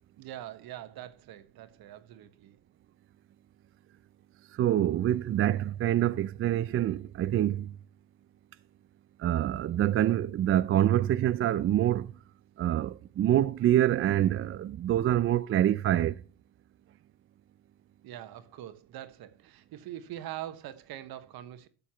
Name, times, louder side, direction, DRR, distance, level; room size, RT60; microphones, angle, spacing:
voice 1, 0.2-2.6 18.0-21.7, right 12 dB, 60° right, 1.3 m, -43 dB
voice 2, 4.5-7.8 9.2-12.1 12.6-16.2, right 12 dB, 35° right, 0.4 m, -26 dB
12.0 x 6.9 x 3.0 m
supercardioid pair, 100°, 41 cm